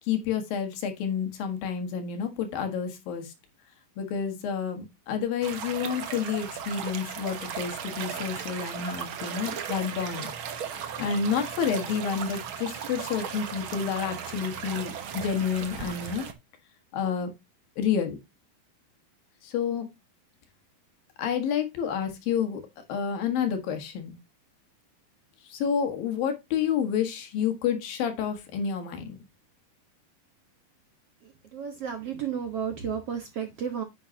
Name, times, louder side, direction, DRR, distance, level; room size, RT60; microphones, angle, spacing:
voice 1, 0.1-3.3 4.0-10.3 11.0-16.3 16.9-17.3 17.8-18.2 19.4-19.9 21.2-22.6 22.9-24.1 25.5-29.2, left 7 dB, 75° left, 3.4 m, -29 dB
sound 1, 5.4-16.3, right 8 dB, 75° right, 1.1 m, -36 dB
voice 2, 31.2-33.8, right 7 dB, 55° right, 1.8 m, -33 dB
10.5 x 7.8 x 2.8 m
omnidirectional pair, 4.1 m